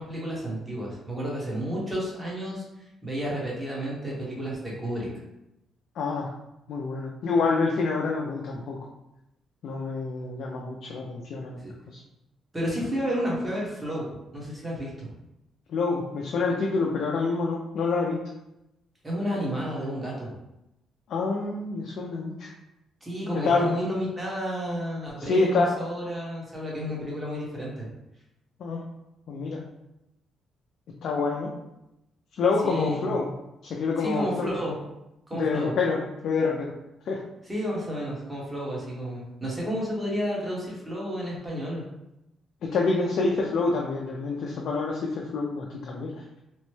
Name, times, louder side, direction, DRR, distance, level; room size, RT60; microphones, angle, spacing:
voice 1, 0.0-2.6 3.0-5.1 11.6-11.7 12.5-14.0 14.3-15.1 19.0-20.4 23.0-27.9 32.6-33.2 34.0-34.8 35.3-35.7 37.4-41.8, equal, 15° right, -4 dB, 1.1 m, -31 dB
voice 2, 6.0-6.3 6.7-8.8 9.6-12.0 15.7-18.2 21.1-22.5 23.4-23.7 25.2-25.8 28.6-28.8 29.3-29.6 31.0-31.5 32.4-33.3 33.6-34.5 35.3-36.7 37.1-37.2 42.6-46.1, left 4 dB, 70° left, -1 dB, 0.4 m, -27 dB
2.9 x 2.1 x 3.1 m, 0.89 s
cardioid pair, 90°, 0 cm